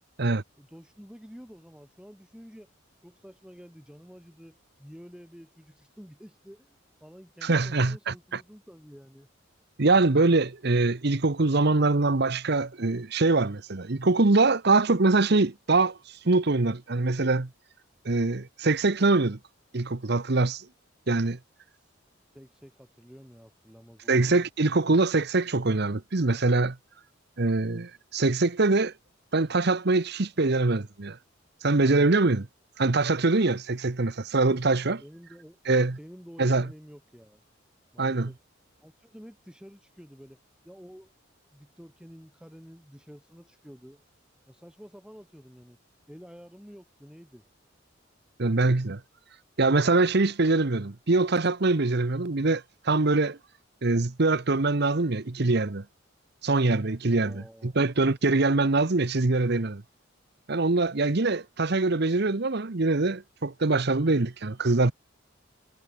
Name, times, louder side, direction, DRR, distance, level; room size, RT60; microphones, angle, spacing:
voice 1, 0.6-2.7 3.0-9.3 21.8-21.9 22.3-24.4 35.0-37.4 37.9-38.4 38.8-40.4 40.6-41.1 41.5-44.0 44.5-45.8 46.1-47.5 57.1-57.7, equal, 5° right, 3.9 m, -49 dB
voice 2, 7.4-8.1 9.8-16.0 16.2-17.5 18.0-19.4 19.7-20.7 21.1-21.4 24.1-26.8 27.4-28.9 29.3-31.2 31.6-32.5 32.8-35.0 35.7-36.0 36.4-36.7 38.0-38.3 48.4-49.0 49.6-53.4 53.8-55.8 56.4-59.8 60.5-64.9, right 3 dB, 55° right, 1.0 m, -23 dB
head